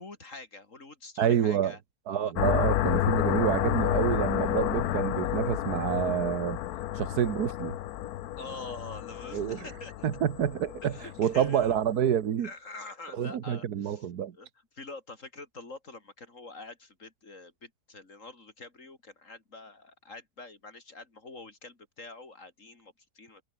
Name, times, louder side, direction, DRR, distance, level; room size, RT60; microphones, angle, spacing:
voice 1, 0.0-1.8 2.1-2.3 8.4-10.1 10.8-11.8 12.4-14.1 14.3-14.5 14.7-23.4, left 3 dB, 55° left, 3.8 m, -45 dB
voice 2, 1.2-1.8 2.1-6.6 7.0-7.8 9.3-9.7 10.0-10.9 11.2-12.5 13.2-14.4, right 9 dB, 80° right, 1.7 m, -28 dB
sound 1, 2.4-11.9, left 13 dB, 75° left, 1.2 m, -30 dB
omnidirectional pair, 1.6 m